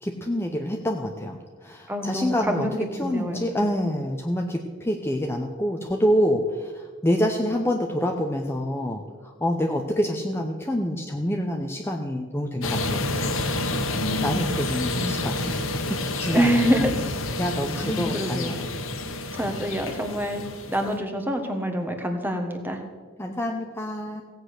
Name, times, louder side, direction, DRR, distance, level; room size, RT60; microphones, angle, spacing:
voice 1, 0.0-13.1 14.2-15.6 15.9-16.7 17.4-18.6 23.2-24.2, equal, 10° left, 1 dB, 0.8 m, -27 dB
voice 2, 1.9-3.4 13.9-14.6 14.9-15.2 16.3-17.0 17.8-18.5 19.3-20.4 20.7-22.8, equal, 10° right, 5 dB, 1.4 m, -26 dB
sound 1, 12.6-21.0, left 2 dB, 80° left, 1.3 m, -29 dB
17.0 x 8.2 x 6.5 m, 1.5 s
head